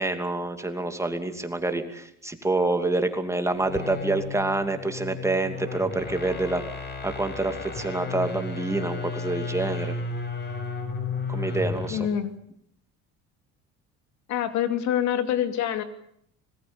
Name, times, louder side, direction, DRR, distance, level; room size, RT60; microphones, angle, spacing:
voice 1, 0.0-6.6 7.0-9.9 11.3-12.1, right 2 dB, 10° right, 7 dB, 2.7 m, -27 dB
sound 1, 3.6-12.1, left 4 dB, 35° left, 6.0 m, -33 dB
voice 2, 11.9-12.3 14.3-15.8, left 10 dB, 65° left, 9 dB, 2.7 m, -26 dB
26.0 x 20.0 x 7.2 m, 0.69 s
cardioid pair, 115°, 30 cm